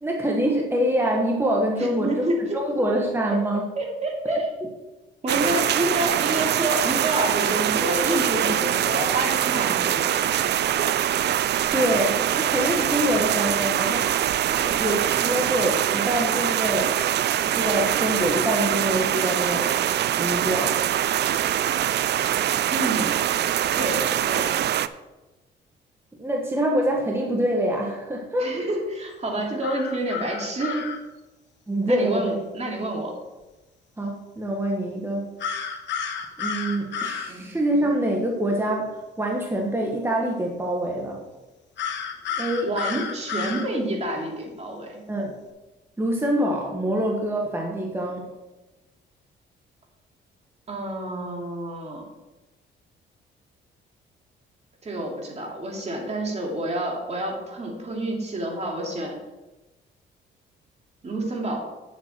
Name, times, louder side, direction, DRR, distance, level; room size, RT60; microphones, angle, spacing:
voice 1, 0.0-2.3 2.5-3.7 4.2-4.7 11.7-14.3 14.6-17.0 17.5-19.7 20.2-20.8 26.2-28.5 31.7-32.4 34.0-35.3 36.4-41.2 42.4-42.7 45.1-45.4 46.0-48.3, right 1 dB, 10° right, -1 dB, 1.5 m, -25 dB
voice 2, 1.7-2.6 3.7-4.4 5.2-10.5 14.5-14.6 22.7-23.2 23.8-24.5 28.4-30.8 31.9-33.1 37.3-37.5 42.6-45.0 50.7-52.0 54.8-59.2 61.0-61.6, right 1 dB, 35° right, -1 dB, 2.9 m, -28 dB
sound 1, 5.3-24.9, right 11 dB, 60° right, 0.4 m, -23 dB
sound 2, 29.6-31.0 35.4-37.3 41.8-43.7, left 6 dB, 65° left, 1.3 m, -31 dB
9.3 x 7.6 x 4.5 m, 1.1 s
cardioid pair, 90°, 20 cm